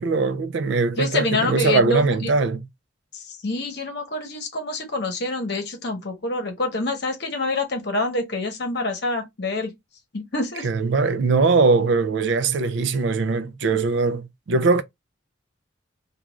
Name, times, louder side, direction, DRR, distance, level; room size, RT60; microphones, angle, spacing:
voice 1, 0.0-2.6 10.6-14.8, right 4 dB, 65° right, 0.4 m, -21 dB
voice 2, 1.0-2.0 3.1-9.7 10.1-10.7, left 2 dB, 55° left, 0.9 m, -26 dB
2.4 x 2.3 x 3.0 m
head